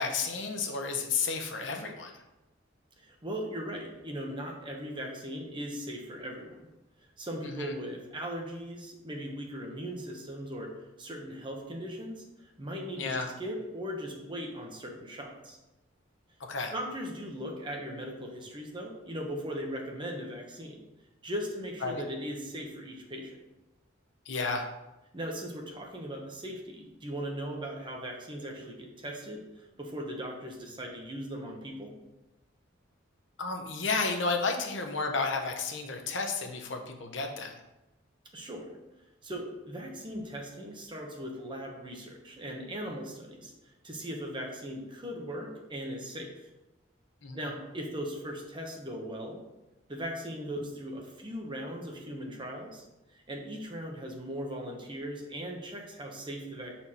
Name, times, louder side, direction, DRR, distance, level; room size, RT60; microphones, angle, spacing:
voice 1, 0.0-2.1 7.4-7.7 13.0-13.3 16.4-16.7 21.8-22.0 24.3-24.7 33.4-37.6 47.2-47.4, left 4 dB, 65° left, 4 dB, 0.8 m, -32 dB
voice 2, 3.0-6.6 7.2-10.7 11.0-15.6 16.7-20.8 21.2-23.4 25.1-31.9 38.3-38.7 39.2-46.3 47.3-49.4 49.9-52.8 53.1-56.7, equal, 25° right, 1 dB, 1.0 m, -39 dB
6.8 x 4.4 x 4.3 m, 0.98 s
head